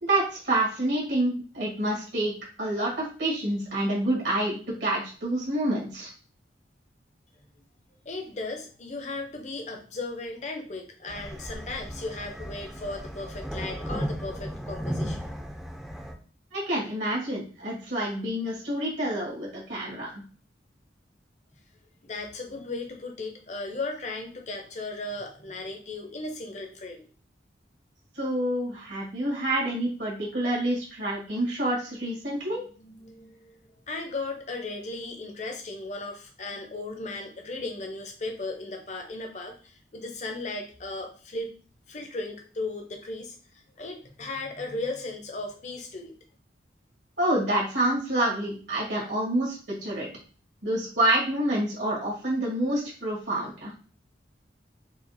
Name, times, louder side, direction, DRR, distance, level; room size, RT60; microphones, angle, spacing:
voice 1, 0.0-2.3 2.6-6.1 16.5-20.2 28.1-32.6 47.2-50.1 50.6-53.7, right 1 dB, 75° right, -4 dB, 1.6 m, -27 dB
voice 2, 8.1-15.2 22.0-27.0 32.8-33.5 33.9-41.5 41.9-46.1, left 2 dB, 40° left, 3 dB, 0.7 m, -36 dB
sound 1, 11.1-16.1, equal, 5° right, 0.5 m, -35 dB
4.8 x 2.4 x 2.7 m, 0.39 s
head